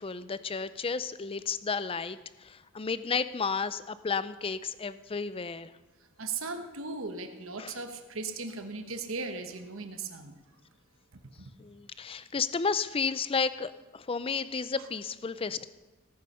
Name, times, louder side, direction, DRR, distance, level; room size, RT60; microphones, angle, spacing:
voice 1, 0.0-5.7 7.6-7.8 11.6-15.6, left 5 dB, 25° left, 14 dB, 0.4 m, -32 dB
voice 2, 6.2-10.3 11.4-11.5, right 4 dB, 65° right, 7 dB, 1.2 m, -37 dB
17.0 x 9.5 x 5.5 m, 1.2 s
head